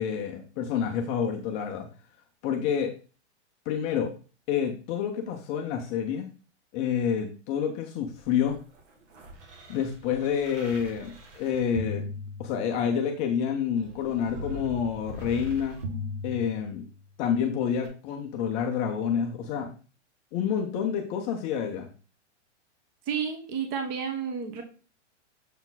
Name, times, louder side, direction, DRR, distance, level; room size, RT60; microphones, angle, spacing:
voice 1, 0.0-1.9 2.4-2.9 3.7-4.1 4.5-6.3 6.7-8.6 9.7-12.1 12.4-15.8 16.2-16.8 17.2-19.7 20.3-21.9, left 8 dB, 20° left, 3 dB, 0.4 m, -28 dB
sound 1, 8.2-13.0 13.8-17.1 17.8-17.9, left 1 dB, 85° right, 2.1 m, -39 dB
voice 2, 23.1-24.6, right 7 dB, 30° right, 5 dB, 1.2 m, -31 dB
7.0 x 4.4 x 3.9 m, 0.35 s
hypercardioid pair, 155°, 36 cm